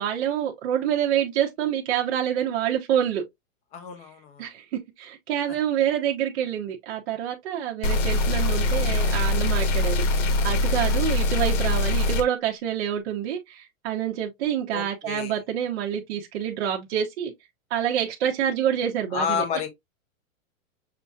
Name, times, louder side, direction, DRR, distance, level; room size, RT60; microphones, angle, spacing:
voice 1, 0.0-3.2 4.4-17.3 17.7-19.4, right 9 dB, 50° right, 1.0 m, -27 dB
voice 2, 3.7-4.5 10.9-11.0 14.7-15.4 19.1-19.7, left 7 dB, 15° left, 0.6 m, -30 dB
sound 1, 7.8-12.2, left 2 dB, 60° left, 1.2 m, -23 dB
6.2 x 2.7 x 2.3 m
supercardioid pair, 160°, 41 cm